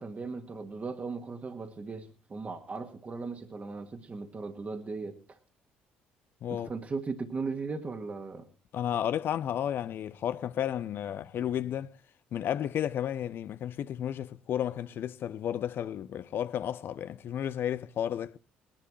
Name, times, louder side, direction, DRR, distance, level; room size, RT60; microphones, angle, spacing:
voice 1, 0.0-5.4 6.5-8.5, right 4 dB, 35° right, 1.8 m, -37 dB
voice 2, 8.7-11.9 12.3-18.4, left 10 dB, 55° left, 0.6 m, -32 dB
20.0 x 11.5 x 3.1 m
hypercardioid pair, 55°, 4 cm